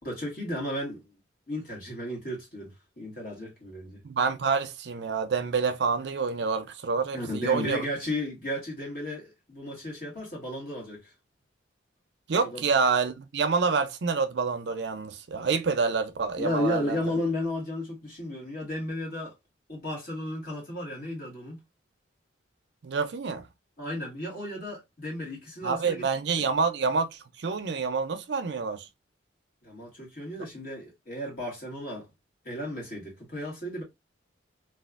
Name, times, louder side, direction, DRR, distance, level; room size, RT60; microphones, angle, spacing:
voice 1, 0.0-1.0 1.5-4.0 7.1-11.1 12.4-12.7 16.4-19.3 19.7-21.6 23.8-26.0 26.4-26.5 29.6-32.1 32.4-33.8, left 1 dB, 45° left, 1.7 m, -34 dB
voice 2, 4.0-7.8 12.3-17.0 22.8-23.5 25.6-28.9, right 5 dB, 60° right, 0.4 m, -27 dB
3.3 x 2.3 x 2.4 m
head